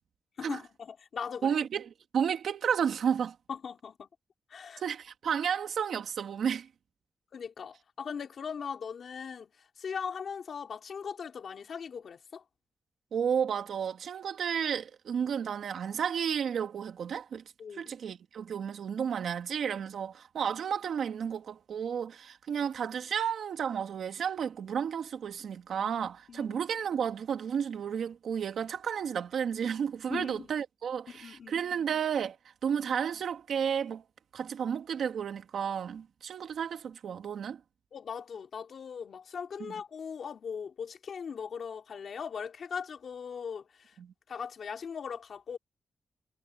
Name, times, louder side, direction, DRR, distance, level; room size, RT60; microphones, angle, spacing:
voice 1, 0.4-1.6 3.5-4.1 4.5-4.8 7.3-9.5 9.8-12.4 17.6-17.9 26.3-26.6 30.1-30.5 31.1-31.6 37.9-43.9 44.3-45.6, left 6 dB, 60° left, 2.8 m, -39 dB
voice 2, 1.4-3.4 4.8-6.7 13.1-17.4 17.7-32.4 32.6-34.0 34.3-37.6 39.7-39.8 44.0-44.1, right 7 dB, 85° right, 2.5 m, -32 dB
wide cardioid pair, 165°, 0 cm